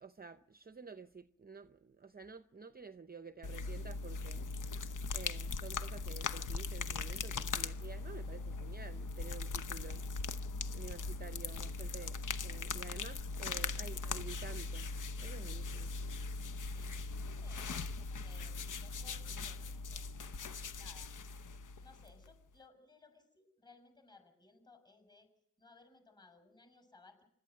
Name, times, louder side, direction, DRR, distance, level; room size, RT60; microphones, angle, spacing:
voice 1, 0.0-4.5 5.1-10.0 10.7-12.2 12.4-14.9 15.2-15.9, right 5 dB, 30° right, 0.7 m, -51 dB
sound 1, 3.4-22.3, left 4 dB, 65° left, 1.0 m, -40 dB
voice 2, 16.7-20.1 20.8-21.1 21.8-25.3 25.6-27.3, left 3 dB, 15° left, 6.9 m, -62 dB
26.0 x 12.5 x 9.3 m
wide cardioid pair, 100°, 33 cm